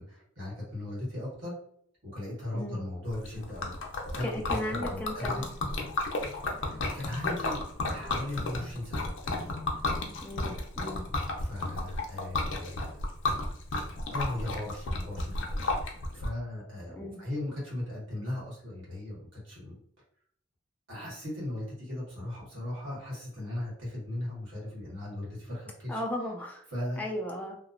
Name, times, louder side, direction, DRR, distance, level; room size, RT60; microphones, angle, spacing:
voice 1, 0.0-1.6 2.0-3.7 4.1-5.4 6.1-7.6 7.9-9.6 11.4-12.9 14.1-19.7 20.9-26.0 26.7-27.0, left 1 dB, 80° right, -6 dB, 1.4 m, -38 dB
Liquid, 3.1-16.3, left 2 dB, 75° left, 0.5 m, -33 dB
voice 2, 4.2-5.5 10.2-11.0 17.0-17.2 25.9-26.6 27.0-27.6, left 1 dB, 10° left, 0 dB, 0.3 m, -36 dB
2.9 x 2.0 x 2.5 m, 0.65 s
head